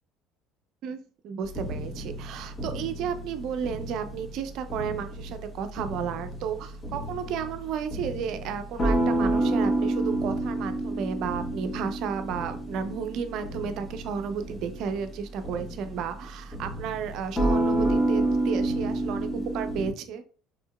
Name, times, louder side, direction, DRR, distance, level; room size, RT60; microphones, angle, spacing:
voice 1, 0.8-20.2, right 7 dB, 60° right, 9 dB, 0.5 m, -33 dB
sound 1, 1.4-19.9, right 1 dB, 30° left, 1.6 m, -30 dB
4.4 x 3.8 x 2.2 m, 0.42 s
hypercardioid pair, 60°, 0 cm